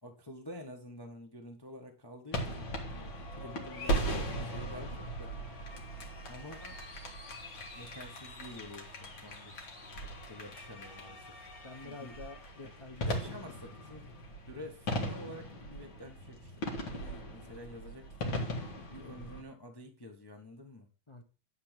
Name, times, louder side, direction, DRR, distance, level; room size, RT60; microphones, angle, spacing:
voice 1, 0.0-2.7 3.3-5.3 6.3-6.9 7.7-9.5 10.0-11.5 11.8-12.2 12.6-12.7 13.1-14.1 14.5-20.9, left 1 dB, 15° left, 3 dB, 1.0 m, -49 dB
sound 1, 2.3-19.4, right 1 dB, 75° left, 2.7 m, -39 dB
voice 2, 11.6-13.1 21.1-21.2, left 3 dB, 40° left, 5 dB, 0.4 m, -48 dB
11.0 x 4.4 x 7.4 m, 0.36 s
omnidirectional pair, 2.2 m